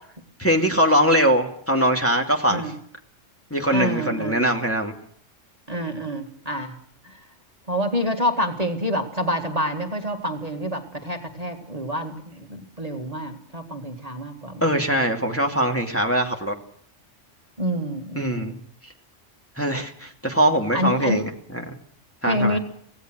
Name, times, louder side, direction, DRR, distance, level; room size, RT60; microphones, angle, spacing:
voice 1, 0.4-2.7 3.5-4.9 14.6-16.5 18.2-18.5 19.6-21.7 22.2-22.6, right 1 dB, 10° left, 1 dB, 2.6 m, -22 dB
voice 2, 3.7-4.5 5.7-6.8 7.0-7.2 7.7-14.6 17.6-18.6 20.7-21.2 22.3-22.6, equal, 30° right, 4 dB, 2.1 m, -27 dB
25.5 x 17.5 x 6.3 m, 0.63 s
omnidirectional pair, 1.3 m